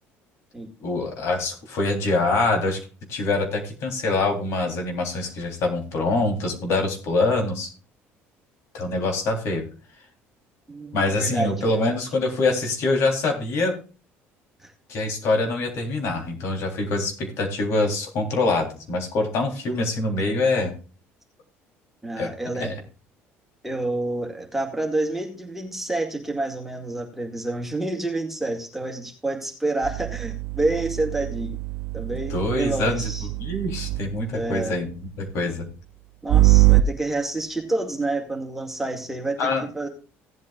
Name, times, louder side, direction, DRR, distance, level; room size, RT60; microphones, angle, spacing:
voice 1, 0.8-2.8 3.1-7.7 8.7-9.6 10.9-13.7 14.9-20.7 22.2-22.3 22.6-22.7 32.3-33.1 33.4-35.7 39.4-39.6, left 2 dB, 65° left, 2 dB, 3.5 m, -24 dB
voice 2, 10.7-11.9 14.6-14.7 22.0-22.7 23.6-31.6 31.9-33.3 34.3-34.7 36.2-39.9, right 2 dB, 5° right, 2 dB, 2.1 m, -28 dB
sound 1, 29.8-34.2 36.3-36.8, right 18 dB, 65° right, 0.7 m, -22 dB
17.0 x 8.3 x 2.4 m, 0.36 s
cardioid pair, 120°, 5 cm